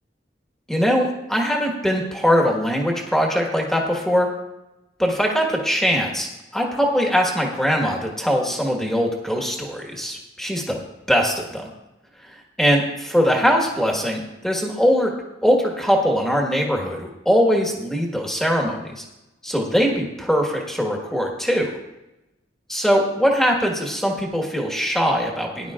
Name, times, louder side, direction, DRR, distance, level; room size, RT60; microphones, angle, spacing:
voice 1, 0.7-4.3 5.0-10.8 11.1-11.7 12.2-15.1 15.4-19.0 19.4-21.8 22.7-25.7, equal, ahead, 0 dB, 1.5 m, -21 dB
17.5 x 11.0 x 2.5 m, 0.96 s
head